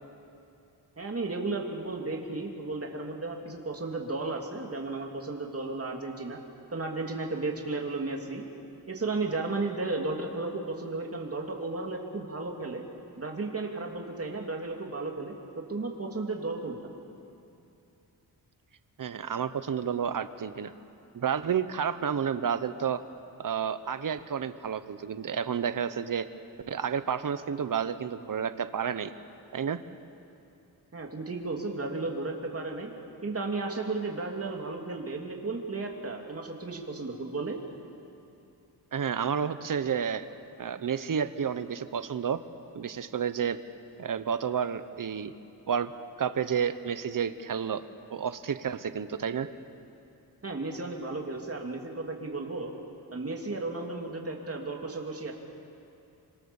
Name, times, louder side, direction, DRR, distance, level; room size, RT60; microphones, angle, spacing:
voice 1, 1.0-6.4 6.7-8.4 8.9-12.8 13.2-16.8 30.9-32.9 33.2-37.6 50.4-52.7 53.1-55.3, right 3 dB, 35° right, 1 dB, 3.1 m, -34 dB
voice 2, 19.0-20.7 21.1-23.0 23.4-26.3 26.7-29.1 29.5-29.8 38.9-40.3 40.6-42.4 42.7-43.6 44.0-45.3 45.7-45.9 46.2-47.8 48.1-49.5, right 7 dB, 50° right, 11 dB, 1.0 m, -30 dB
27.5 x 24.5 x 7.2 m, 2.7 s
wide cardioid pair, 110°, 41 cm